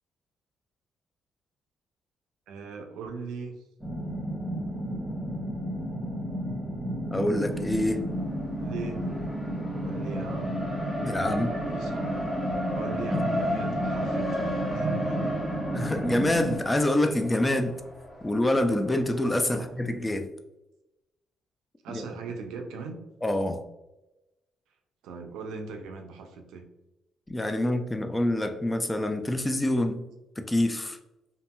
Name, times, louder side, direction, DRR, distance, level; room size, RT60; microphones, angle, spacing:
voice 1, 2.5-3.6 8.6-9.0 9.8-10.6 11.0-15.4 19.5-19.7 21.8-23.0 25.0-26.6, right 4 dB, 90° right, 4 dB, 0.4 m, -39 dB
sound 1, 3.8-16.6, equal, 15° right, 0.9 m, -32 dB
voice 2, 7.1-8.0 11.0-11.5 13.1-13.4 15.7-17.8 18.2-20.3 21.9-22.0 23.2-23.6 27.3-30.0 30.4-31.0, left 1 dB, 15° left, 7 dB, 0.3 m, -26 dB
Race car auto racing, 7.2-19.8, equal, 35° left, 1.0 m, -35 dB
2.8 x 2.7 x 2.2 m, 0.97 s
cardioid pair, 90°, 0 cm